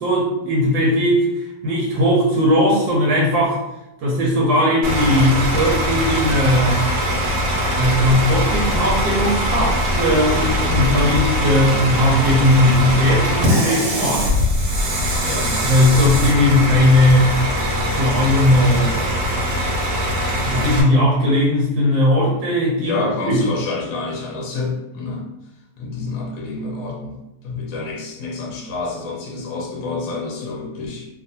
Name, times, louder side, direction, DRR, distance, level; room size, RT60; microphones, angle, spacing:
voice 1, 0.0-3.6 4.0-6.8 7.7-14.3 15.6-17.3 17.8-19.0 20.4-23.4, left 1 dB, 70° right, -4 dB, 1.1 m, -18 dB
Bus / Idling, 4.8-20.8, equal, 90° right, 1.3 m, -21 dB
voice 2, 15.2-15.6 22.8-25.3 25.8-31.1, left 3 dB, 70° left, -1 dB, 1.0 m, -28 dB
3.1 x 2.2 x 2.7 m, 0.91 s
omnidirectional pair, 1.8 m